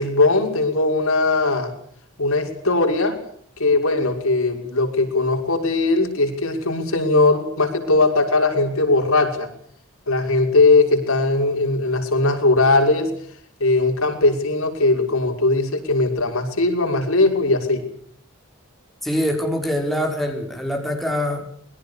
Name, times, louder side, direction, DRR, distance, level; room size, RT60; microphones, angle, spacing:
voice 1, 0.0-1.7 2.2-3.2 3.6-9.5 10.1-13.1 13.6-17.8, left 2 dB, 80° left, 4 dB, 6.3 m, -19 dB
voice 2, 19.0-21.4, equal, ahead, 2 dB, 5.6 m, -24 dB
27.5 x 22.5 x 7.0 m, 0.65 s
head